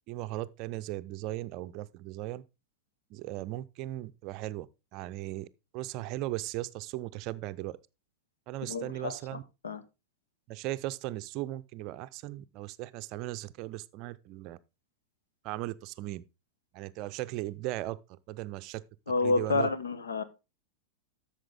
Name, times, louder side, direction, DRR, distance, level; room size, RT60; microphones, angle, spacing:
voice 1, 0.1-2.4 3.1-5.5 5.7-7.8 8.5-9.4 10.5-14.6 15.4-16.2 16.7-18.8 19.2-19.7, right 16 dB, 40° right, 0.5 m, -37 dB
voice 2, 8.7-9.2 9.6-9.8 19.1-20.2, left 3 dB, 70° left, 1.0 m, -29 dB
12.5 x 6.5 x 3.6 m
figure-of-eight pair, 90°, 0 cm